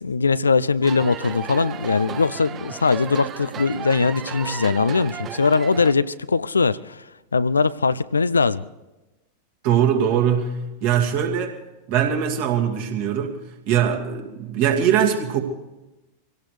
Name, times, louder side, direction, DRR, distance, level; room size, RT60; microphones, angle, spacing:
voice 1, 0.0-7.0 7.3-8.6, left 4 dB, 75° left, 16 dB, 0.4 m, -21 dB
sound 1, 0.8-5.9, right 8 dB, 30° right, 0.7 m, -34 dB
voice 2, 9.6-11.6 11.9-13.4 13.7-15.4, right 8 dB, 50° right, 1 dB, 2.4 m, -21 dB
24.5 x 17.5 x 3.3 m, 1.0 s
figure-of-eight pair, 90°, 0 cm